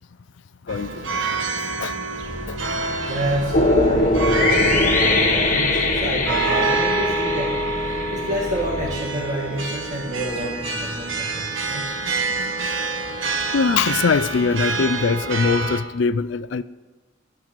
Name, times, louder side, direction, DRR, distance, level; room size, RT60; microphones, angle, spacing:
voice 1, 0.6-1.1 1.8-2.0 2.5-2.6 12.5-12.6 13.5-16.6, left 5 dB, 70° left, 16 dB, 0.4 m, -22 dB
sound 1, 0.7-15.8, right 3 dB, 75° right, 1.0 m, -27 dB
sound 2, 2.2-9.0, equal, 5° right, 1.6 m, -36 dB
voice 2, 3.0-11.9, equal, 40° right, -2 dB, 1.6 m, -28 dB
sound 3, 3.5-8.7, left 2 dB, 40° left, 1.1 m, -21 dB
13.5 x 7.6 x 5.9 m, 1.2 s
head